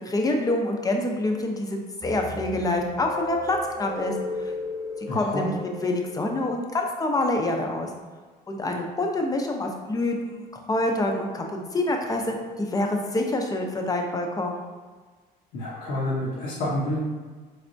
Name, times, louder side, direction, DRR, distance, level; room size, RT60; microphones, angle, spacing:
voice 1, 0.0-4.1 4.4-4.5 5.1-5.5 5.8-7.9 8.5-14.6, left 2 dB, 20° left, 2 dB, 0.5 m, -26 dB
sound 1, 2.0-7.1, left 3 dB, 5° right, 1.1 m, -36 dB
voice 2, 5.1-5.5 15.5-17.0, left 1 dB, 85° left, -7 dB, 0.8 m, -28 dB
4.0 x 3.3 x 2.6 m, 1.4 s
cardioid pair, 110°, 17 cm